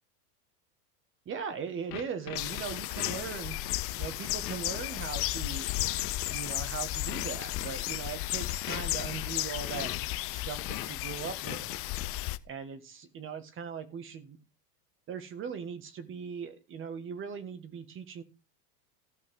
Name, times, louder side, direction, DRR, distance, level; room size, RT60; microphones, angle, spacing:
voice 1, 1.2-3.6 3.9-5.9 6.3-9.9 10.3-11.8 12.4-14.4 15.1-18.2, right 6 dB, 25° right, 1.5 m, -39 dB
sound 1, 1.9-6.6 7.1-10.2 10.6-12.1, left 13 dB, 80° left, 1.7 m, -41 dB
sound 2, 2.4-12.4, left 17 dB, 30° left, 0.6 m, -34 dB
14.5 x 6.0 x 6.1 m
supercardioid pair, 135°, 47 cm